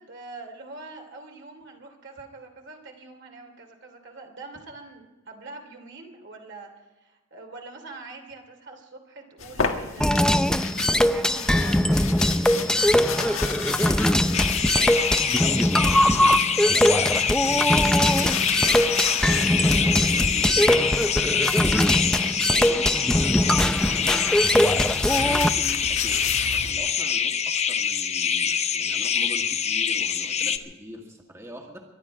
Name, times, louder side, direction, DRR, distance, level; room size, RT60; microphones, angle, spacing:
voice 1, 0.0-6.7 7.0-12.0 12.7-14.6, right 3 dB, 60° right, 3 dB, 2.9 m, -44 dB
sound 1, 9.4-22.2 23.2-26.7, left 6 dB, 80° left, 1.6 m, -34 dB
sound 2, 10.0-25.5, left 1 dB, 5° left, 0.4 m, -21 dB
voice 2, 13.1-14.1 15.4-17.3 18.7-21.9 22.6-24.2 25.1-31.8, equal, 15° right, 0 dB, 1.9 m, -42 dB
sound 3, 14.3-30.6, left 7 dB, 35° left, 0.7 m, -25 dB
23.5 x 11.0 x 4.9 m, 1.2 s
head